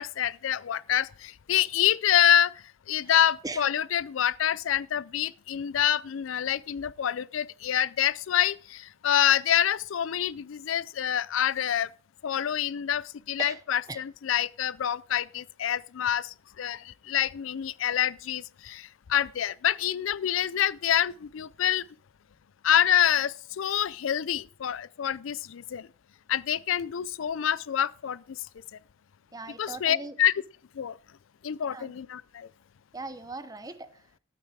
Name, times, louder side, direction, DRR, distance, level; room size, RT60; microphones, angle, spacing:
voice 1, 0.0-2.5 2.9-11.9 12.2-21.8 22.6-25.9 26.3-28.2 29.6-30.3 30.8-30.9 31.4-32.5, left 10 dB, 80° left, 0.4 m, -27 dB
voice 2, 29.3-30.2 31.7-31.9 32.9-34.0, right 3 dB, 20° right, 0.8 m, -39 dB
12.5 x 9.0 x 4.7 m
head